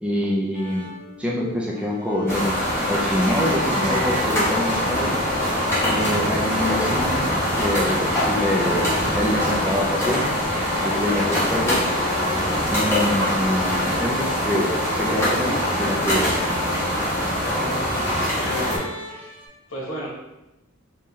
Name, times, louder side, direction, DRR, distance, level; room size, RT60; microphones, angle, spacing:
voice 1, 0.0-0.9 1.2-5.2 5.9-7.3 7.5-8.9 9.1-10.3 10.8-11.9 12.7-16.3, equal, 5° right, -3 dB, 0.4 m, -25 dB
sound 1, 0.5-19.5, left 2 dB, 20° right, 1.1 m, -36 dB
sound 2, 2.3-18.8, left 1 dB, 15° left, 1.2 m, -23 dB
sound 3, 2.5-17.5, right 2 dB, 70° right, 0.5 m, -39 dB
voice 2, 17.4-19.4 19.7-20.1, equal, 65° left, -4 dB, 1.2 m, -33 dB
3.6 x 2.8 x 3.1 m, 0.97 s
head